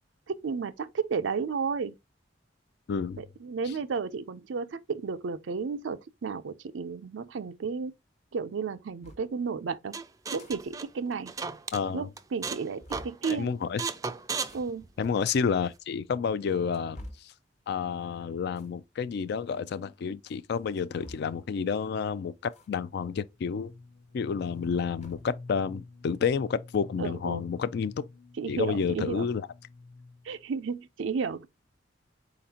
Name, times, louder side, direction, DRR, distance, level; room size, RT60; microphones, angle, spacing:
voice 1, 0.3-1.9 3.2-7.9 8.3-9.9 10.3-11.3 11.9-13.5 14.5-14.9 27.0-27.4 28.4-29.3 30.2-31.5, right 5 dB, 90° right, 0.5 m, -33 dB
voice 2, 2.9-3.2 11.7-12.1 13.3-13.8 15.0-17.3 17.7-23.7 24.1-27.9 28.5-29.4, left 6 dB, 60° left, 0.3 m, -30 dB
sound 1, 9.0-9.3 10.2-10.6 10.9-11.0 11.2-11.3 11.9-12.0 12.4-13.2 14.4-14.6 15.5-15.6 16.3-17.4 18.5-18.8 20.5-21.5 22.5-22.7 23.1-23.2 24.4-25.4, left 1 dB, 40° left, 0.8 m, -48 dB
sound 2, 9.9-11.8 12.2-12.7 12.9-13.4 13.8-15.4, right 5 dB, 20° right, 0.3 m, -35 dB
sound 3, 22.8-30.5, left 3 dB, 80° left, 0.9 m, -49 dB
4.2 x 3.9 x 2.8 m
head